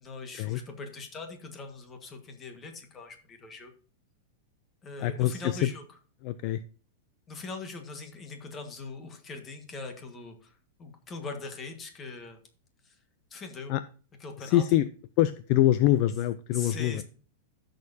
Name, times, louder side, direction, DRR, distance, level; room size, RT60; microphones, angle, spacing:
voice 1, 0.0-3.7 4.8-5.8 7.3-12.4 12.8-13.0 13.3-13.7 14.2-14.6 16.5-17.0, left 3 dB, 20° left, 5 dB, 1.6 m, -41 dB
voice 2, 5.0-5.6 6.2-6.6 13.7-13.8 14.4-14.9 15.2-17.0, left 13 dB, 40° left, 13 dB, 0.4 m, -25 dB
14.0 x 6.6 x 2.8 m, 0.39 s
supercardioid pair, 165°, 0 cm